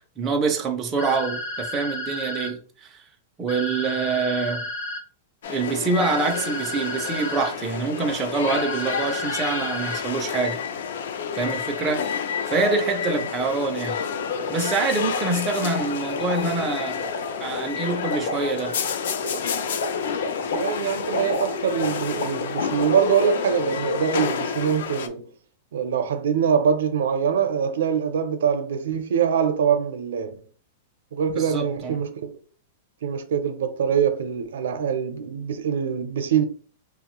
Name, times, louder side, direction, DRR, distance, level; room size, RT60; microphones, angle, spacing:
voice 1, 0.2-3.0 3.4-4.6 5.5-10.6 11.4-12.0 12.5-14.0 14.5-17.1 17.4-18.8 31.3-32.0, right 4 dB, 15° right, 0.3 m, -25 dB
sound 1, 1.0-2.5 3.5-5.0 6.0-7.5 8.5-10.0, left 1 dB, 50° left, 0.8 m, -32 dB
sound 2, 5.4-25.1, left 7 dB, 65° left, 0.3 m, -30 dB
sound 3, 13.7-23.2, left 2 dB, 85° left, 0.9 m, -33 dB
voice 2, 20.5-25.3 25.7-30.5 31.1-32.3 33.0-36.5, right 7 dB, 80° right, 0.5 m, -24 dB
3.0 x 2.0 x 2.9 m
supercardioid pair, 180°, 0 cm